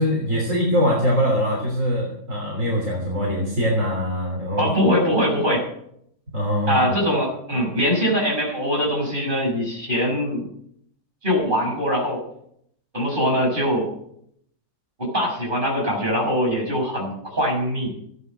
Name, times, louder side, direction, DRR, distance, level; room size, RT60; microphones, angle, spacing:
voice 1, 0.0-4.7 6.3-6.9, equal, 55° right, -2 dB, 3.9 m, -22 dB
voice 2, 4.6-5.7 6.7-10.5 11.2-12.2 12.9-13.9 15.0-17.9, equal, 30° right, -1 dB, 6.7 m, -22 dB
15.5 x 11.0 x 6.6 m, 0.70 s
omnidirectional pair, 1.6 m